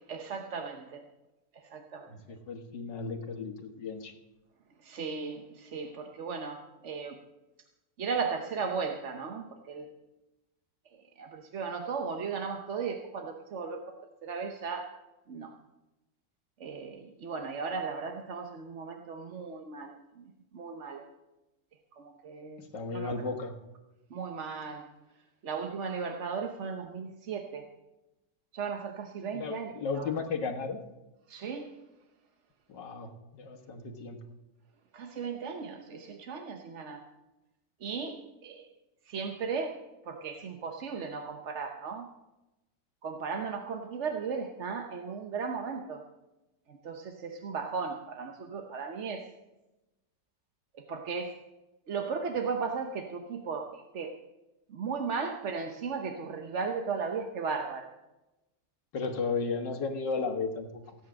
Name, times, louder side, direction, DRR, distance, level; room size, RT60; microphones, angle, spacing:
voice 1, 0.1-1.0 1.7-2.1 4.9-5.4 5.7-7.1 8.0-9.9 11.2-13.8 14.2-14.9 15.3-15.5 16.6-19.9 20.5-21.0 22.2-22.6 22.9-23.1 24.1-24.8 25.4-27.6 28.5-29.7 31.3-31.7 34.9-37.0 37.8-38.6 39.1-39.7 40.1-42.0 43.0-46.0 46.8-49.2 50.9-51.3 51.9-53.7 53.9-54.1 54.7-57.9, right 5 dB, 50° right, 4 dB, 1.1 m, -36 dB
voice 2, 2.1-4.1 22.6-23.5 29.3-30.8 32.7-34.2 58.9-61.0, left 4 dB, 85° left, 5 dB, 2.2 m, -34 dB
17.0 x 9.3 x 6.3 m, 1.0 s
omnidirectional pair, 1.9 m